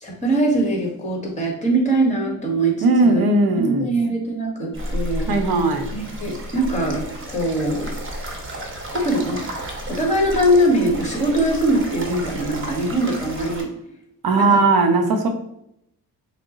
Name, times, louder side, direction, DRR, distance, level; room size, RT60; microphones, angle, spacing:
voice 1, 0.0-3.2 3.6-5.3 5.9-7.0 7.3-7.9 8.9-9.6 9.9-13.7 14.4-14.6, right 1 dB, 20° left, -1 dB, 1.7 m, -22 dB
voice 2, 2.8-3.9 5.3-5.9 14.2-15.3, right 3 dB, 65° right, 5 dB, 0.8 m, -18 dB
sound 1, 4.7-13.6, right 1 dB, 30° right, 1.1 m, -32 dB
6.1 x 2.1 x 3.9 m, 0.77 s
cardioid pair, 90°, 39 cm